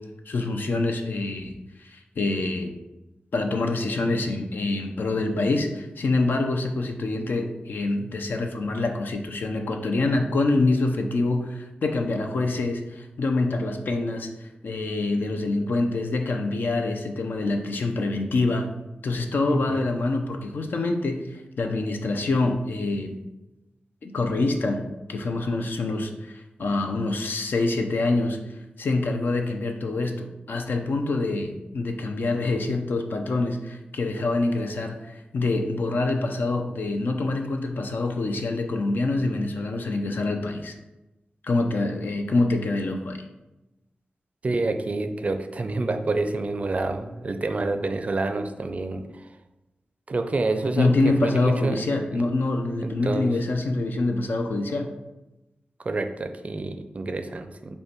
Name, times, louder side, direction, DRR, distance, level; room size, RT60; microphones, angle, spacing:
voice 1, 0.3-2.7 3.3-18.7 19.0-23.2 24.0-28.4 28.8-40.7 41.4-43.2 50.8-54.9, left 2 dB, 75° left, 4 dB, 0.5 m, -26 dB
voice 2, 19.5-19.8 44.4-49.3 50.1-50.9 51.2-51.8 52.1-52.2 52.8-53.3 55.8-57.8, right 3 dB, 45° right, 7 dB, 0.4 m, -28 dB
5.3 x 2.2 x 4.3 m, 1.0 s
wide cardioid pair, 85°, 3 cm